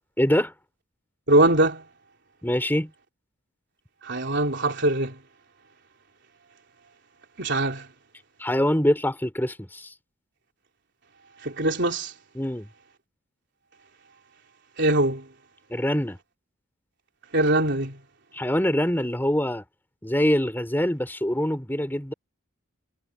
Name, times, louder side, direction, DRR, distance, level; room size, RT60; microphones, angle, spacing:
voice 1, 0.2-0.5 2.4-2.9 8.4-9.9 12.4-12.7 15.7-16.2 18.3-19.6 20.0-22.1, equal, 10° left, 3.4 m, -24 dB
voice 2, 1.3-1.8 4.0-5.2 7.4-7.9 11.4-12.1 14.8-15.3 17.3-18.0, right 1 dB, 55° right, 3.6 m, -22 dB
head